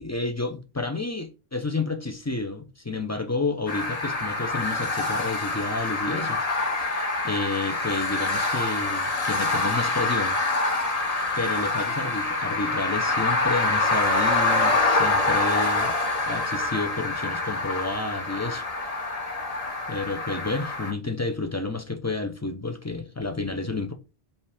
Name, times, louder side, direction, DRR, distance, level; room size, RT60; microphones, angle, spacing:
voice 1, 0.0-6.4 7.2-10.4 11.4-15.9 16.3-18.6 19.9-23.9, left 3 dB, 25° left, 0.4 m, -30 dB
sound 1, 3.7-20.9, left 2 dB, 40° left, 0.8 m, -26 dB
5.3 x 2.5 x 3.4 m
omnidirectional pair, 1.1 m